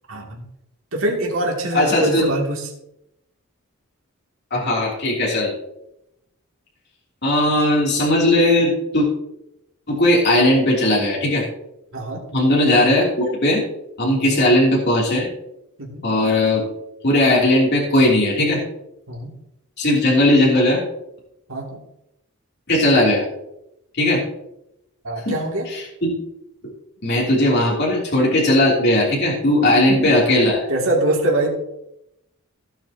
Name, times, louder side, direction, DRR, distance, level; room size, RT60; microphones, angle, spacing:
voice 1, 0.1-0.4 0.9-2.7 11.9-12.2 14.3-14.4 15.8-16.0 19.1-19.4 21.5-21.8 25.0-25.7 29.6-30.1 30.4-31.5, right 1 dB, 65° right, -2 dB, 2.8 m, -24 dB
voice 2, 1.7-2.2 4.5-5.5 7.2-9.1 9.9-11.4 12.3-13.6 14.0-15.3 16.0-16.6 17.0-18.6 19.8-20.8 22.7-23.2 23.9-24.2 25.2-25.4 25.7-26.1 27.0-30.6, left 1 dB, 50° left, -4 dB, 3.3 m, -17 dB
16.5 x 9.0 x 3.0 m, 0.84 s
head